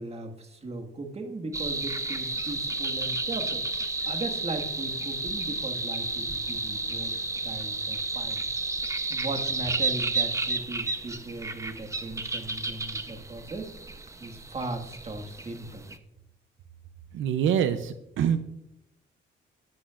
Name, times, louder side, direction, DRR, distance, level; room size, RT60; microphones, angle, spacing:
voice 1, 0.0-8.5 9.1-13.7 14.2-15.9, right 2 dB, 30° right, 4 dB, 1.7 m, -38 dB
sound 1, 1.5-16.0, right 3 dB, 15° right, 0.8 m, -32 dB
voice 2, 17.1-18.4, right 8 dB, 75° right, 10 dB, 0.6 m, -25 dB
14.0 x 9.8 x 2.5 m, 0.84 s
cardioid pair, 90°, 20 cm